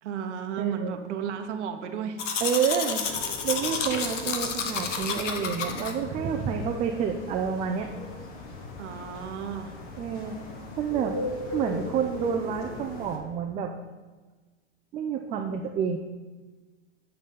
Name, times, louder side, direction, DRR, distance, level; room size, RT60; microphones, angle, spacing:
voice 1, 0.0-2.2 8.8-9.8, right 7 dB, 70° right, 6 dB, 0.9 m, -33 dB
voice 2, 0.6-0.9 2.4-3.1 3.4-7.9 10.0-10.4 10.8-11.2 11.4-13.7 14.9-16.0, right 7 dB, 20° right, 3 dB, 0.3 m, -29 dB
Domestic sounds home sounds, 2.2-5.9, left 6 dB, 80° left, 1.0 m, -30 dB
sound 1, 3.0-13.2, left 2 dB, 55° left, 1.5 m, -39 dB
8.5 x 4.0 x 5.3 m, 1.3 s
hypercardioid pair, 110°, 36 cm